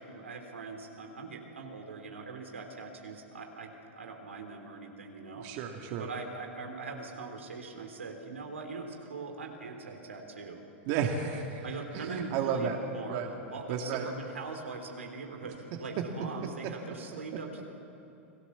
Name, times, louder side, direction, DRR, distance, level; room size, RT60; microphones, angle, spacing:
voice 1, 0.0-3.7 4.0-5.5 6.0-10.6 11.6-13.2 13.5-17.6, right 4 dB, 90° right, 3 dB, 3.5 m, -42 dB
voice 2, 5.4-6.1 10.9-11.6 11.9-12.8 13.1-13.3 13.7-14.1, right 7 dB, 55° right, 2 dB, 2.3 m, -32 dB
29.5 x 20.0 x 7.2 m, 2.7 s
hypercardioid pair, 100°, 7 cm